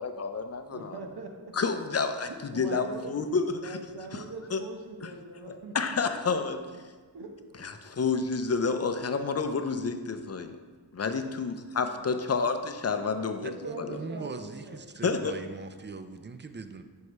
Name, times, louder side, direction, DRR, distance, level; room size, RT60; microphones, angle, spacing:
voice 1, 0.0-1.0 1.5-3.8 4.1-4.2 4.5-4.6 5.7-6.6 7.6-10.6 10.9-13.5 13.8-14.0 15.0-15.3, left 4 dB, 35° left, 7 dB, 0.5 m, -29 dB
voice 2, 0.7-1.5 2.3-3.2 3.6-6.1 6.4-6.5 7.1-7.3 11.8-12.2 12.9-14.9, right 3 dB, 60° right, 3 dB, 0.9 m, -42 dB
voice 3, 13.4-16.8, right 4 dB, 25° right, 9 dB, 0.4 m, -40 dB
4.8 x 4.7 x 5.4 m, 1.4 s
wide cardioid pair, 60°, 43 cm